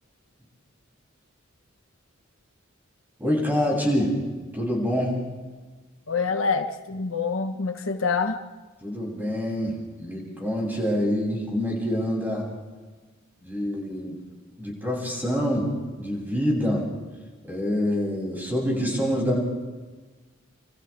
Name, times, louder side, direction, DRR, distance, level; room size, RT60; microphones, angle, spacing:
voice 1, 3.2-4.2 4.5-5.2 8.8-12.5 13.4-14.2 14.6-15.7 16.0-16.9 17.4-19.4, equal, 10° right, -2 dB, 7.8 m, -26 dB
voice 2, 6.1-8.4, left 5 dB, 80° left, 6 dB, 1.5 m, -26 dB
28.5 x 27.0 x 3.6 m, 1.3 s
head